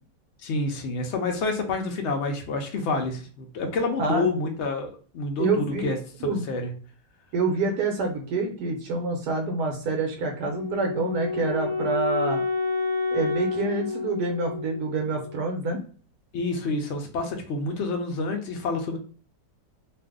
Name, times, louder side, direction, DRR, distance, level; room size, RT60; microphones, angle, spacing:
voice 1, 0.4-6.0 6.2-6.7 16.3-19.0, left 3 dB, 80° left, 3 dB, 0.6 m, -28 dB
voice 2, 5.4-5.9 6.2-6.5 7.3-12.4 13.1-15.8, right 3 dB, 70° right, 3 dB, 1.1 m, -27 dB
Wind instrument woodwind instrument, 10.5-15.5, left 4 dB, 30° right, 0.7 m, -29 dB
2.6 x 2.5 x 3.5 m, 0.41 s
omnidirectional pair, 1.8 m